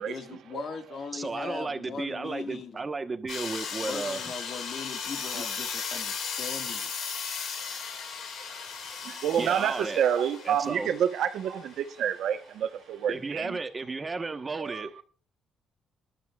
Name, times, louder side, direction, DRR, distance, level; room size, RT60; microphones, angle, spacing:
voice 1, 0.0-2.8 3.8-6.9, left 5 dB, 55° left, 2.0 m, -39 dB
voice 2, 1.1-4.2 5.3-5.4 8.3-8.9 9.4-10.0 10.4-10.9 13.1-15.0, right 3 dB, 30° right, 1.3 m, -34 dB
sound 1, 3.3-11.9, left 6 dB, 75° left, 2.3 m, -36 dB
voice 3, 9.0-13.6 14.6-14.9, right 9 dB, 75° right, 1.1 m, -28 dB
21.0 x 12.0 x 2.5 m
cardioid pair, 90°, 0 cm